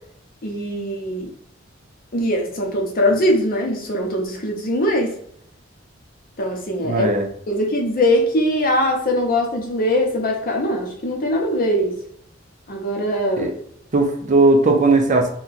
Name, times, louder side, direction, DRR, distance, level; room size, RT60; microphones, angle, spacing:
voice 1, 0.4-1.3 2.1-5.1 6.4-7.1 7.5-12.0 12.7-13.5, equal, 45° left, 1 dB, 0.7 m, -21 dB
voice 2, 6.8-7.3 13.4-13.5 13.9-15.3, right 2 dB, 40° right, 3 dB, 0.5 m, -17 dB
2.9 x 2.2 x 4.0 m, 0.67 s
head